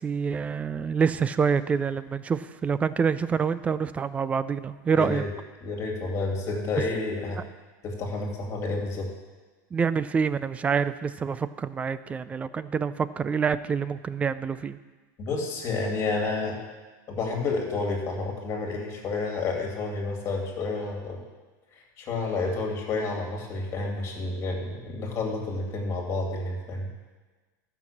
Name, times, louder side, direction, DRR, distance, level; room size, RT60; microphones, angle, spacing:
voice 1, 0.0-5.2 9.7-14.8, right 6 dB, 15° right, 15 dB, 0.3 m, -26 dB
voice 2, 4.9-5.3 5.6-7.4 7.8-9.1 15.2-16.6 17.1-21.2 21.7-26.9, left 3 dB, 30° left, 1 dB, 2.5 m, -30 dB
13.5 x 6.0 x 7.3 m, 1.3 s
supercardioid pair, 150°, 10 cm